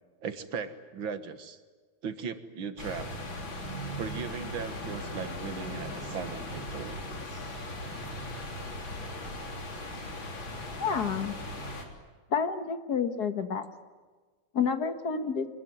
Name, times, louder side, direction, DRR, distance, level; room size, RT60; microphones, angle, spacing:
voice 1, 0.2-1.6 2.0-3.1 4.0-7.0, right 6 dB, 90° right, 10 dB, 2.3 m, -37 dB
sound 1, 2.8-11.9, left 1 dB, 80° left, 4.0 m, -38 dB
voice 2, 10.8-11.4 12.3-13.7 14.5-15.5, left 6 dB, 55° left, 8 dB, 2.0 m, -29 dB
26.0 x 21.0 x 9.4 m, 1.4 s
omnidirectional pair, 2.1 m